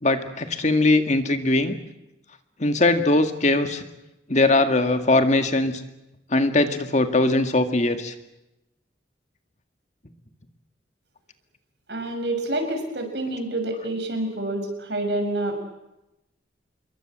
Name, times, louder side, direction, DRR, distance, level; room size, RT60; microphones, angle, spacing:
voice 1, 0.0-1.7 2.6-3.8 4.3-5.8 6.3-8.1, left 2 dB, 40° left, 7 dB, 2.0 m, -20 dB
voice 2, 11.9-15.6, right 1 dB, 75° right, 5 dB, 6.5 m, -27 dB
27.5 x 22.5 x 7.6 m, 0.93 s
head